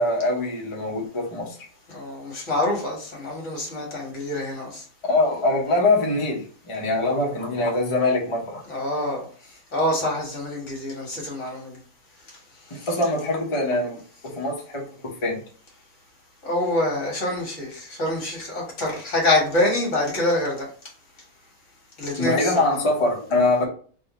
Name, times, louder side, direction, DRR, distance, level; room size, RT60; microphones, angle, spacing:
voice 1, 0.0-1.6 5.1-8.6 12.9-15.4 22.2-23.6, left 2 dB, 25° left, -2 dB, 0.7 m, -23 dB
voice 2, 1.9-4.8 8.7-9.2 9.7-11.8 12.8-12.9 16.4-20.7 22.0-22.9, left 1 dB, 55° left, -2 dB, 1.6 m, -26 dB
3.6 x 2.7 x 4.0 m, 0.43 s
omnidirectional pair, 1.6 m